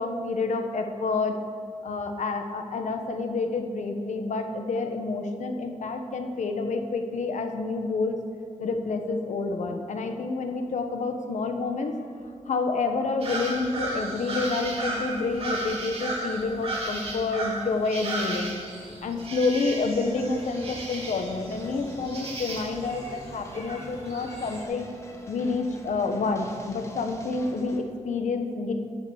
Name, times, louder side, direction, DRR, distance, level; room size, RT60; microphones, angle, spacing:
voice 1, 0.0-1.3 1.8-8.2 8.6-12.0 12.5-18.5 19.0-24.9 25.3-28.7, left 3 dB, 75° left, 5 dB, 1.2 m, -28 dB
sound 1, 13.2-24.6, right 2 dB, 50° right, 2.7 m, -35 dB
sound 2, 20.1-27.8, left 1 dB, 25° left, 1.7 m, -46 dB
11.5 x 6.6 x 8.2 m, 2.3 s
wide cardioid pair, 105°, 12 cm